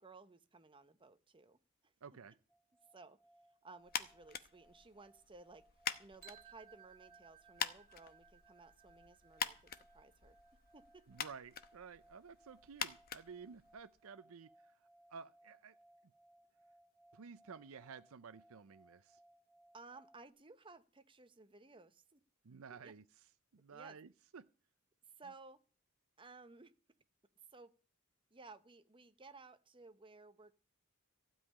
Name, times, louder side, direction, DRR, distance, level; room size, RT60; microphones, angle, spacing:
voice 1, 0.0-1.6 1.8-1.9 2.9-3.2 3.6-5.7 6.0-10.4 10.7-11.1 19.7-22.2 22.7-22.9 23.7-24.0 25.2-25.6 26.2-26.7 27.5-27.7 28.3-30.5, right 3 dB, 25° right, 0.9 m, -58 dB
voice 2, 2.0-2.3 11.1-14.5 15.1-15.7 17.1-19.2 22.4-23.0 23.5-24.5, right 6 dB, 70° right, 0.5 m, -53 dB
sound 1, 2.5-20.3, right 1 dB, 10° left, 1.6 m, -68 dB
sound 2, 3.9-14.1, left 8 dB, 45° left, 0.9 m, -46 dB
sound 3, 6.2-12.1, right 11 dB, 45° right, 2.5 m, -64 dB
15.5 x 5.5 x 9.7 m
head